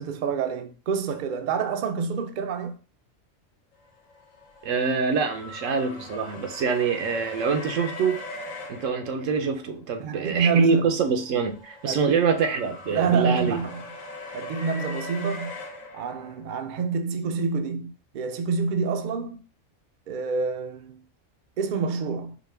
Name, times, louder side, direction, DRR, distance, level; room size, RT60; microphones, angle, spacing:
voice 1, 0.0-2.8 10.0-10.8 11.8-12.3 12.9-13.8 14.3-15.6 15.9-19.4 20.1-21.0 21.6-22.4, right 5 dB, 60° right, 0.5 m, -27 dB
sound 1, 4.1-9.7 11.1-16.4, left 2 dB, 85° left, 1.2 m, -40 dB
voice 2, 4.6-8.2 8.7-13.6, right 5 dB, 85° right, 1.1 m, -25 dB
5.0 x 2.1 x 3.3 m
omnidirectional pair, 1.3 m